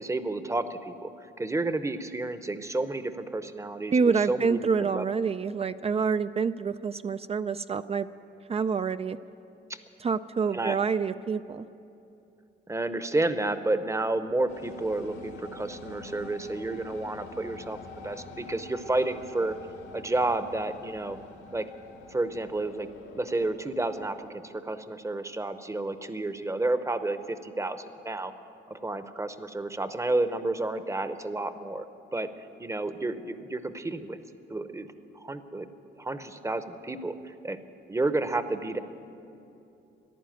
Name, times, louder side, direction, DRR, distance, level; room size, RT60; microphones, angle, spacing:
voice 1, 0.0-3.9 4.3-5.1 9.7-9.8 10.5-10.8 12.7-19.6 19.9-21.2 21.5-21.7 22.1-22.9 23.1-28.3 28.7-31.9 32.1-34.2 34.5-34.9 35.1-35.7 36.0-37.6 37.9-38.8, right 2 dB, 15° right, 11 dB, 0.8 m, -31 dB
voice 2, 3.9-8.1 8.5-9.2 10.0-11.7, right 5 dB, 30° right, 12 dB, 0.4 m, -27 dB
sound 1, 14.5-24.1, left 3 dB, 90° left, 2.2 m, -46 dB
14.5 x 11.0 x 9.1 m, 2.8 s
cardioid pair, 90°, 20 cm